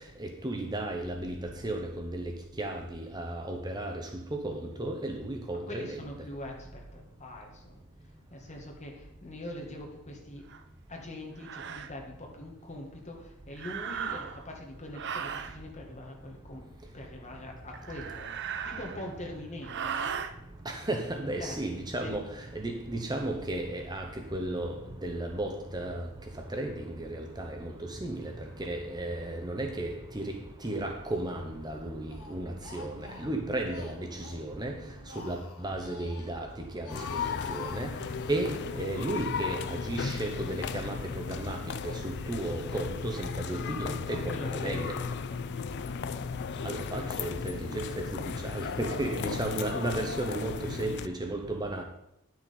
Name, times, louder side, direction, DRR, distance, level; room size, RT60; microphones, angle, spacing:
voice 1, 0.2-6.0 20.7-22.3 22.5-24.7 25.0-26.0 26.5-28.3 28.6-30.3 30.6-34.8 35.2-36.5 36.7-37.0 37.5-37.9 38.3-44.9 46.6-51.8, right 1 dB, 20° right, 0.8 m, -34 dB
voice 2, 5.7-7.8 8.3-10.4 10.9-16.6 16.9-18.3 18.6-20.0 21.4-21.6 22.0-22.1 44.0-46.4, left 1 dB, 30° left, 2.0 m, -43 dB
sound 1, 10.5-10.6 11.4-11.9 13.5-14.5 14.9-15.6 17.7-19.2 19.6-20.3, right 7 dB, 55° right, 0.6 m, -37 dB
Speech, 30.6-31.3 31.6-34.4 34.8-36.3 36.7-38.5, left 3 dB, 90° left, 1.3 m, -47 dB
sound 2, 36.9-51.1, left 6 dB, 50° left, 0.4 m, -35 dB
10.0 x 6.4 x 5.4 m
head